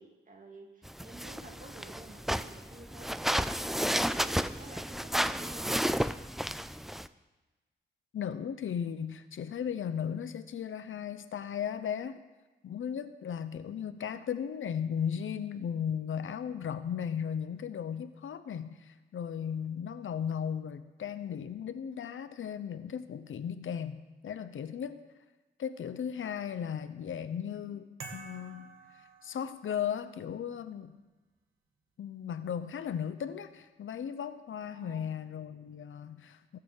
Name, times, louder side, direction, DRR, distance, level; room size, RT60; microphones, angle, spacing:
voice 1, 0.0-3.1 3.9-5.9 34.7-35.1, right 2 dB, 40° right, 2 dB, 2.2 m, -51 dB
sound 1, 0.9-7.1, equal, ahead, 0.3 m, -32 dB
voice 2, 8.1-12.2 12.6-25.0 25.6-28.7 29.2-31.0 32.0-36.6, left 8 dB, 85° left, 11 dB, 0.8 m, -36 dB
sound 2, 28.0-29.9, right 4 dB, 85° right, 1.8 m, -48 dB
16.5 x 6.8 x 7.7 m, 1.2 s
wide cardioid pair, 130°, 20 cm